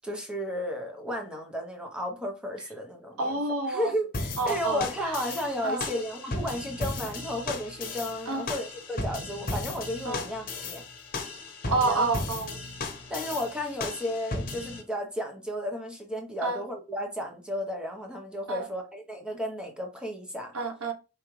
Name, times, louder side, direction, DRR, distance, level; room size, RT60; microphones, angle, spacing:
voice 1, 0.0-3.4 3.7-10.8 11.6-12.1 13.1-20.5, equal, 5° right, 0.9 m, -33 dB
voice 2, 3.2-3.9 4.4-5.2 5.6-5.8 8.3-8.5 10.0-10.3 11.7-12.6 16.4-16.6 18.5-18.7 20.5-20.9, right 3 dB, 85° right, 0.9 m, -29 dB
sound 1, 4.1-14.8, left 2 dB, 40° left, 1.0 m, -35 dB
4.7 x 3.2 x 3.1 m
head